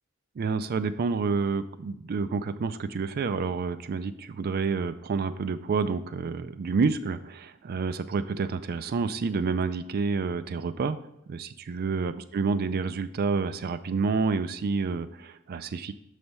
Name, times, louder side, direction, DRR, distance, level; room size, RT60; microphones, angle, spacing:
voice 1, 0.4-11.0 11.3-15.9, right 4 dB, 45° right, 13 dB, 0.3 m, -29 dB
7.0 x 3.3 x 5.4 m, 0.83 s
head